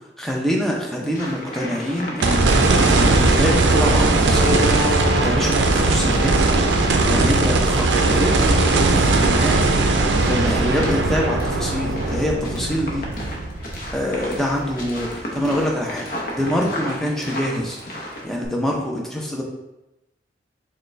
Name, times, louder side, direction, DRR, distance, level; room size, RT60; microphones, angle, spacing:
voice 1, 0.2-5.0 5.2-6.5 7.1-9.7 10.2-13.1 13.9-16.1 16.3-17.8 18.2-19.4, equal, ahead, -2 dB, 0.5 m, -25 dB
sound 1, 1.0-18.2, equal, 50° left, 0.8 m, -35 dB
sound 2, 2.2-14.5 15.0-15.1 18.4-18.5, right 2 dB, 80° right, 0.4 m, -19 dB
sound 3, 2.9-7.3, left 1 dB, 30° left, 1.0 m, -29 dB
5.0 x 2.2 x 3.1 m, 0.94 s
head